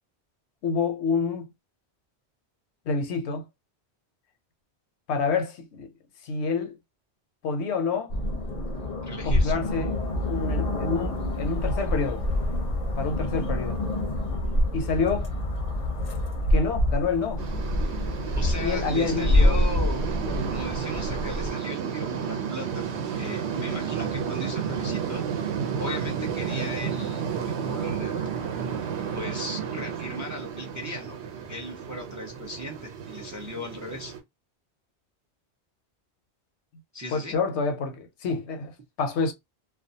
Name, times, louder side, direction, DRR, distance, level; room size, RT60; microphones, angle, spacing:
voice 1, 0.6-1.5 2.9-3.5 5.1-5.9 6.2-6.8 7.4-8.1 9.2-9.9 10.2-12.2 13.0-13.8 14.7-15.3 16.5-17.4 18.6-19.6 20.3-20.6 37.1-39.3, left 4 dB, 80° left, 0.9 m, -28 dB
sound 1, 8.1-21.5, left 1 dB, 45° left, 0.6 m, -26 dB
voice 2, 9.1-9.6 18.3-20.0 20.5-22.8 23.1-25.2 25.8-28.4 29.1-31.2 31.5-34.1 36.9-37.4, left 1 dB, 30° right, 0.4 m, -37 dB
sound 2, 17.4-34.2, right 7 dB, 80° right, 0.9 m, -32 dB
2.3 x 2.2 x 2.6 m
omnidirectional pair, 1.1 m